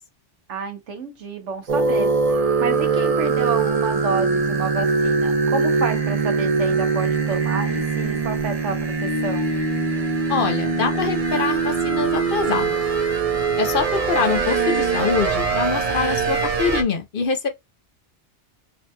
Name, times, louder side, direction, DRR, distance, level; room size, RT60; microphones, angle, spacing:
voice 1, 0.5-2.1 2.6-9.5, right 5 dB, 90° right, 1.3 m, -29 dB
sound 1, 1.7-16.8, right 4 dB, 40° right, 0.6 m, -22 dB
voice 2, 10.3-12.8 13.6-17.5, left 5 dB, 55° left, 0.8 m, -24 dB
5.1 x 2.8 x 2.2 m
omnidirectional pair, 1.2 m